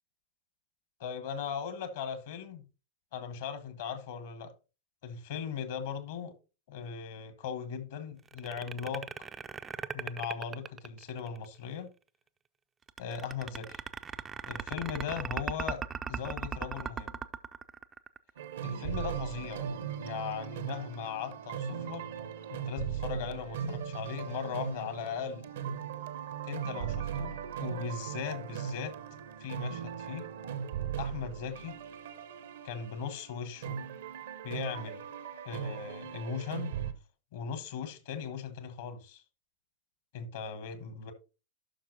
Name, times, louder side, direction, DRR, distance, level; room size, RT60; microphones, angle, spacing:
voice 1, 1.0-2.6 3.1-4.5 5.0-6.3 6.7-9.1 9.9-11.9 13.0-13.8 14.5-15.8 16.1-17.2 18.6-19.7 20.0-22.0 22.5-25.4 26.4-28.9 29.4-30.3 31.0-31.7 32.6-33.8 34.4-35.0 35.4-36.7 37.3-39.2 40.1-41.1, left 7 dB, 55° left, 1.2 m, -38 dB
sound 1, 8.3-11.5 12.9-18.4, right 6 dB, 20° right, 0.4 m, -38 dB
sound 2, 18.4-36.9, right 8 dB, 60° right, 0.7 m, -38 dB
11.5 x 5.9 x 2.7 m
figure-of-eight pair, 90°, 0 cm